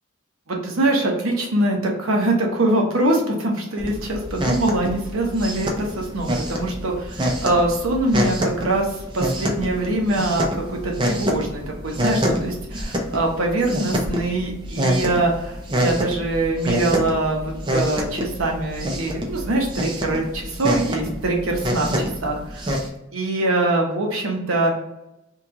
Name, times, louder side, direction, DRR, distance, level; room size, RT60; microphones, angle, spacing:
voice 1, 0.5-8.9 9.1-22.9 23.1-24.7, right 2 dB, 80° right, 0 dB, 0.9 m, -23 dB
sound 1, 3.8-22.9, equal, 25° right, 0.5 m, -26 dB
2.9 x 2.4 x 3.6 m, 0.91 s
head